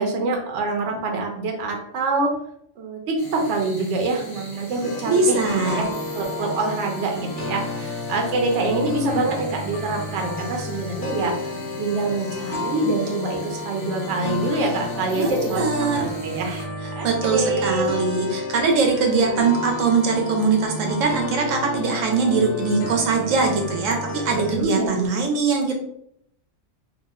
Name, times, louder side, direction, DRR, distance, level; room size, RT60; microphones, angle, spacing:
voice 1, 0.0-2.3 2.8-16.7 17.0-17.9 24.1-25.2, right 2 dB, 70° right, 2 dB, 0.9 m, -26 dB
sound 1, 3.2-16.7, left 1 dB, 25° left, 0.6 m, -41 dB
sound 2, 4.8-24.6, left 2 dB, 60° left, 0.9 m, -31 dB
voice 2, 5.1-5.8 15.2-16.1 17.0-25.7, right 4 dB, 90° right, 1 dB, 1.0 m, -22 dB
2.6 x 2.0 x 3.5 m, 0.72 s
omnidirectional pair, 1.3 m